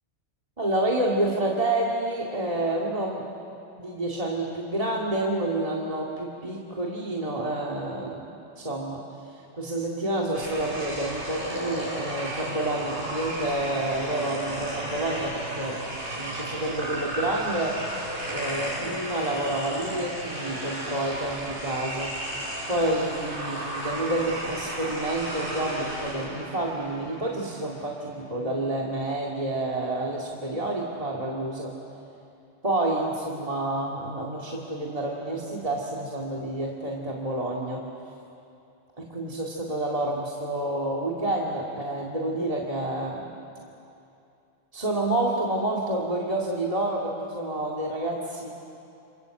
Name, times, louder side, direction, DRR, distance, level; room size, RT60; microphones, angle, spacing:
voice 1, 0.6-3.2 3.8-9.0 9.6-15.8 16.2-17.8 18.3-22.1 22.7-31.7 32.6-37.8 39.0-43.3 44.7-48.5, right 1 dB, 30° right, -2 dB, 2.4 m, -29 dB
sound 1, 10.3-27.7, right 1 dB, 45° right, 6.6 m, -34 dB
28.5 x 26.5 x 7.8 m, 2.6 s
omnidirectional pair, 1.2 m